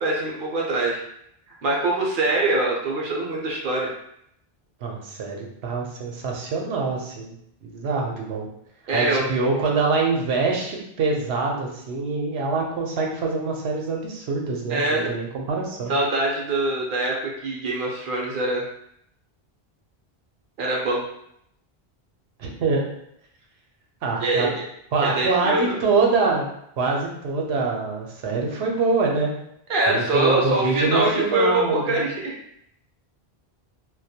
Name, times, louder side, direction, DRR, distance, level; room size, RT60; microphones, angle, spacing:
voice 1, 0.0-1.0 1.5-3.9 8.9-9.2 14.7-15.1 15.9-18.6 20.6-21.0 24.2-24.7 25.0-25.6 29.7-32.4, right 2 dB, 60° right, -2 dB, 0.7 m, -23 dB
voice 2, 4.8-8.5 8.9-16.0 22.4-22.8 24.0-24.5 24.9-26.4 26.8-29.3 29.9-32.0, right 4 dB, 85° right, 0 dB, 0.8 m, -25 dB
2.2 x 2.1 x 2.7 m, 0.74 s
omnidirectional pair, 1.1 m